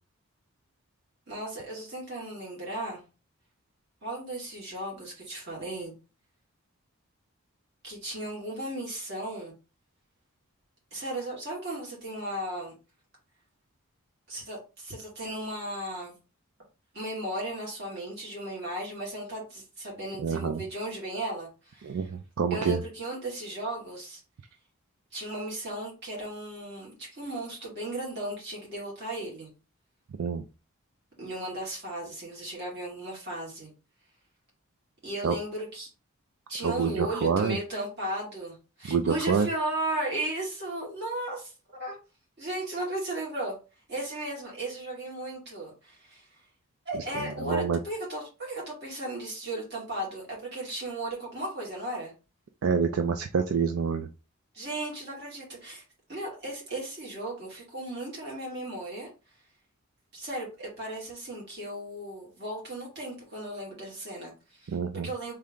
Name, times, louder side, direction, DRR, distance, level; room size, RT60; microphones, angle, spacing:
voice 1, 1.3-3.0 4.0-5.9 7.8-9.5 10.9-12.8 14.3-16.2 16.9-22.0 22.5-24.2 25.1-29.5 31.2-33.7 35.0-35.9 36.5-41.5 41.8-42.0 42.4-43.6 43.9-46.4 46.9-52.1 54.5-55.8 56.1-59.1 60.1-65.3, right 1 dB, 50° right, -3 dB, 2.3 m, -36 dB
voice 2, 20.2-20.6 21.8-22.8 30.2-30.4 35.2-35.4 36.6-37.6 38.9-39.5 46.9-47.8 52.6-54.1 64.7-65.1, right 6 dB, 75° right, 7 dB, 0.4 m, -27 dB
3.6 x 3.3 x 3.7 m, 0.32 s
head